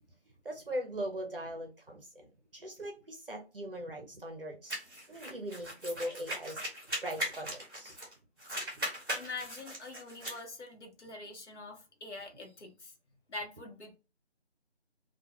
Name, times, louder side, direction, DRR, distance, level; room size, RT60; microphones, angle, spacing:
voice 1, 0.4-4.8 5.1-6.6 7.0-8.0, equal, 55° right, 0.6 m, -40 dB
sound 1, 4.7-8.1 8.4-10.4, equal, 20° right, 0.9 m, -39 dB
voice 2, 9.1-12.9 13.3-14.0, left 3 dB, 80° left, 0.9 m, -44 dB
2.2 x 2.2 x 2.9 m
figure-of-eight pair, 170°, 34 cm